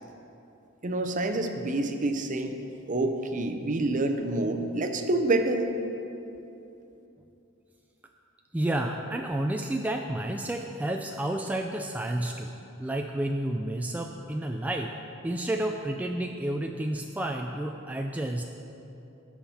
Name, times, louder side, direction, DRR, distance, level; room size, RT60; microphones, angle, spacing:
voice 1, 0.8-2.5 2.9-5.7, right 2 dB, 40° right, 6 dB, 0.7 m, -27 dB
voice 2, 8.5-12.5 12.8-14.9 15.2-18.4, right 1 dB, 10° right, 2 dB, 0.3 m, -30 dB
15.0 x 5.9 x 4.2 m, 2.8 s
head